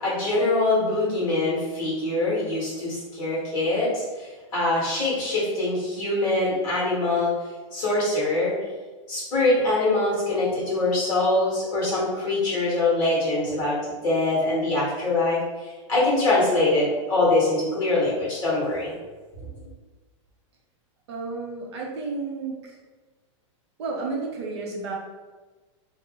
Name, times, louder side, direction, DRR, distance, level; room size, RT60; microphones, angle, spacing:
voice 1, 0.0-7.3 7.7-8.5 9.1-18.9 19.3-19.5, left 2 dB, 25° left, -7 dB, 1.3 m, -24 dB
voice 2, 21.1-22.8 23.8-24.9, right 3 dB, 55° right, -1 dB, 0.6 m, -32 dB
3.0 x 2.0 x 3.5 m, 1.3 s
supercardioid pair, 180°, 17 cm